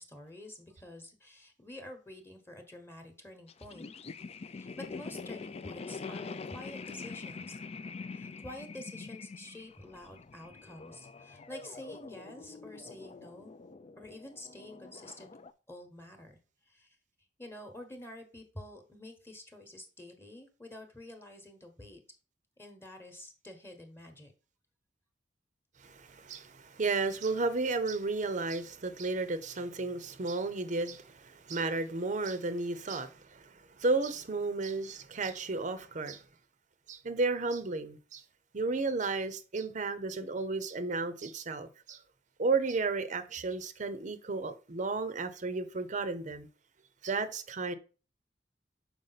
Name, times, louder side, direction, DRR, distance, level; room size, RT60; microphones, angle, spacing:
voice 1, 0.0-3.9 4.4-7.6 8.1-13.5 13.9-15.3 15.7-16.4 16.7-16.9 17.4-22.0 22.6-24.3, left 1 dB, 15° left, 1.1 m, -48 dB
sound 1, 3.5-15.5, left 4 dB, 35° left, 0.4 m, -45 dB
voice 2, 25.8-36.2 36.9-38.2 38.5-42.0 42.4-46.5 47.0-47.7, right 3 dB, 45° right, 0.6 m, -33 dB
6.5 x 4.7 x 4.0 m
head